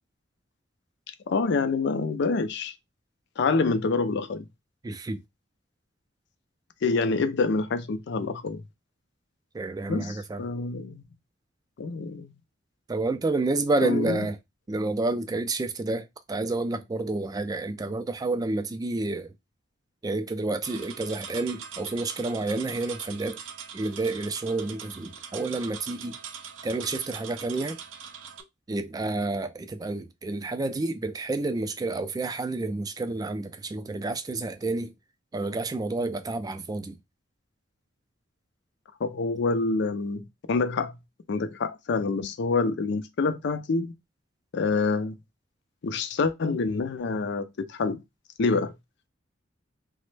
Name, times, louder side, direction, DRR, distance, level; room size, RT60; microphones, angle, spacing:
voice 1, 1.3-2.7 3.4-4.5 6.8-8.6 9.9-11.0 11.8-12.3 13.8-14.3 39.0-40.9 41.3-43.9 44.5-45.2 45.8-48.0 48.4-48.7, left 4 dB, 65° left, 0.4 m, -27 dB
voice 2, 4.8-5.2 9.5-10.4 12.9-14.4 14.7-19.3 20.0-23.4 23.7-26.2 26.6-27.8 28.7-34.9 35.3-37.0, right 2 dB, 20° right, 0.3 m, -29 dB
sound 1, 20.6-28.4, right 7 dB, 75° right, 0.5 m, -42 dB
3.0 x 2.0 x 3.2 m
head